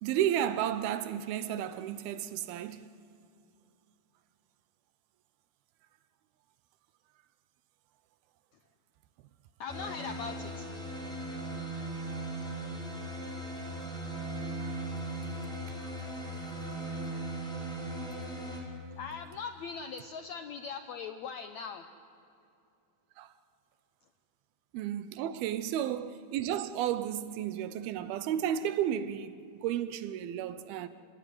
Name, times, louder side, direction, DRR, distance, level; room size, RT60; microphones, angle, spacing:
voice 1, 0.0-2.9 14.6-14.8 15.8-15.9 23.2-23.3 24.7-30.9, right 10 dB, 80° right, 2.7 m, -33 dB
voice 2, 9.6-10.7 19.0-21.9, left 6 dB, 75° left, 1.6 m, -40 dB
sound 1, 9.7-18.6, right 1 dB, ahead, 4.1 m, -38 dB
29.5 x 20.0 x 9.6 m
omnidirectional pair, 4.5 m